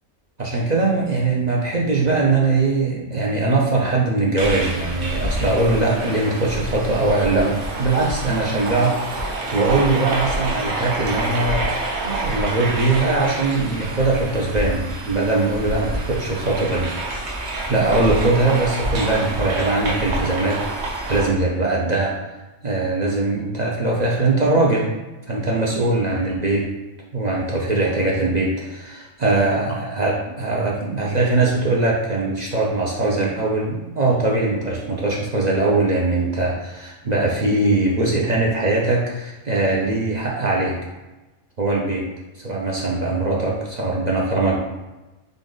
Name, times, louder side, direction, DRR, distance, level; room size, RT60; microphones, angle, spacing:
voice 1, 0.4-11.7 12.0-16.9 17.7-22.2 22.6-24.9 25.3-26.6 27.1-40.7 41.6-42.0 42.4-44.5, right 2 dB, 45° right, -3 dB, 0.6 m, -21 dB
sound 1, 4.4-21.3, right 2 dB, 65° right, 1.1 m, -27 dB
5.2 x 2.4 x 3.8 m, 1.1 s
omnidirectional pair, 1.3 m